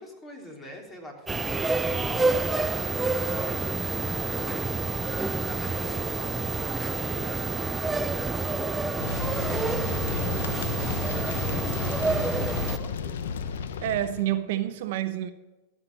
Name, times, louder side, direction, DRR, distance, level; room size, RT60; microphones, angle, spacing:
voice 1, 0.0-13.1, left 1 dB, 20° left, 1 dB, 3.2 m, -44 dB
sound 1, 1.3-12.8, right 3 dB, 10° right, 0.4 m, -28 dB
sound 2, 9.0-14.2, left 6 dB, 80° left, 0.8 m, -32 dB
voice 2, 13.8-15.3, right 12 dB, 70° right, 10 dB, 0.8 m, -28 dB
13.0 x 6.8 x 6.6 m, 1.1 s
hypercardioid pair, 110°, 0 cm